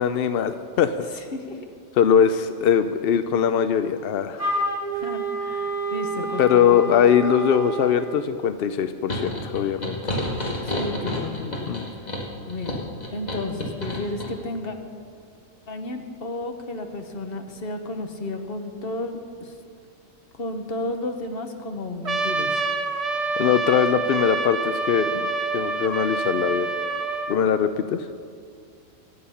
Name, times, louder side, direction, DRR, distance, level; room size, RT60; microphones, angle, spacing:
voice 1, 0.0-1.0 2.0-4.5 6.4-10.1 11.7-11.9 23.4-25.3 25.5-26.7 27.3-28.1, left 8 dB, 65° left, 10 dB, 0.6 m, -21 dB
voice 2, 1.1-1.6 4.9-6.9 10.6-11.7 12.0-12.1 12.5-12.8 13.1-14.8 15.7-19.5 20.4-22.6, left 2 dB, 45° left, 5 dB, 1.3 m, -32 dB
Wind instrument woodwind instrument, 4.4-8.0, right 2 dB, 10° left, 3.1 m, -28 dB
sound 1, 9.1-14.3, left 1 dB, 30° left, 2.1 m, -30 dB
Trumpet, 22.1-27.4, right 3 dB, 35° right, 0.7 m, -27 dB
23.5 x 8.7 x 5.6 m, 2.2 s
omnidirectional pair, 1.4 m